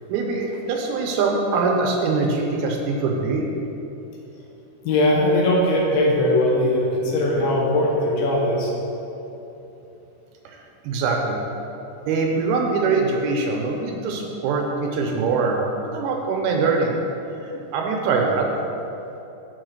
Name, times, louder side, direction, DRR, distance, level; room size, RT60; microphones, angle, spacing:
voice 1, 0.1-3.5 10.5-11.4 12.1-17.0 17.4-18.5, right 4 dB, 80° right, 0 dB, 2.5 m, -23 dB
voice 2, 4.8-8.7, left 1 dB, 75° left, -3 dB, 2.8 m, -20 dB
6.9 x 4.3 x 6.4 m, 3.0 s
omnidirectional pair, 4.6 m